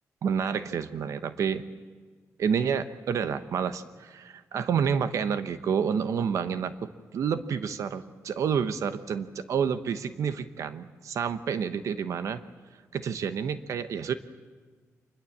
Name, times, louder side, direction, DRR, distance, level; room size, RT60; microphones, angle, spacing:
voice 1, 0.2-1.6 2.4-12.4 12.9-14.1, right 7 dB, 65° right, 11 dB, 1.0 m, -29 dB
25.5 x 21.0 x 7.4 m, 1.5 s
wide cardioid pair, 140°, 6 cm